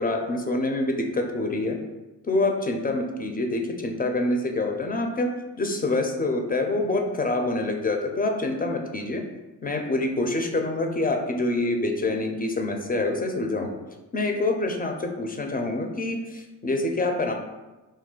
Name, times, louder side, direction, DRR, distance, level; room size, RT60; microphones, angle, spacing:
voice 1, 0.0-1.8 2.2-5.3 5.6-9.2 9.6-13.7 14.1-17.3, left 2 dB, 20° left, 3 dB, 0.4 m, -26 dB
2.4 x 2.2 x 3.7 m, 1.1 s
cardioid pair, 65°, 42 cm